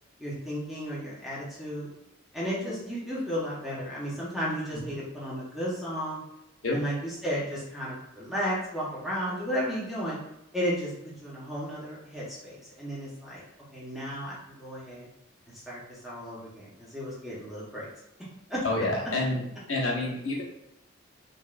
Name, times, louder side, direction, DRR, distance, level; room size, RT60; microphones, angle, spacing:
voice 1, 0.2-1.9 2.3-6.2 6.7-10.2 10.5-10.9 11.2-13.4 13.7-15.1 15.5-17.9 18.5-18.6, equal, ahead, -8 dB, 1.0 m, -33 dB
voice 2, 18.6-19.4 19.7-20.4, left 2 dB, 70° left, -3 dB, 1.1 m, -28 dB
5.2 x 2.5 x 2.5 m, 0.85 s
head